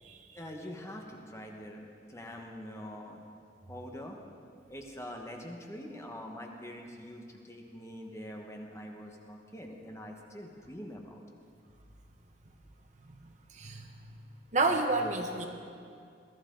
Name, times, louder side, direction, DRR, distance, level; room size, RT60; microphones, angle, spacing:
voice 1, 0.3-3.2 3.7-4.2 4.7-11.2, equal, 15° left, 1 dB, 1.2 m, -44 dB
voice 2, 13.5-13.9 14.5-15.5, right 3 dB, 40° right, 3 dB, 1.0 m, -29 dB
21.5 x 14.5 x 3.8 m, 2.4 s
head